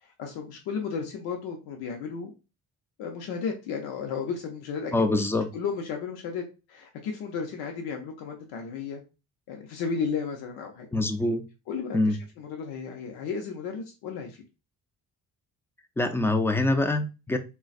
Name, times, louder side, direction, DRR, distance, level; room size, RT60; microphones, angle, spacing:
voice 1, 0.0-2.3 3.0-5.2 5.5-9.0 9.5-10.9 11.7-14.4, left 5 dB, 75° left, 0.7 m, -34 dB
voice 2, 4.9-5.5 10.9-11.5 11.9-12.2 16.0-17.4, left 2 dB, 5° left, 0.5 m, -24 dB
3.8 x 2.2 x 2.4 m
supercardioid pair, 70°, 38 cm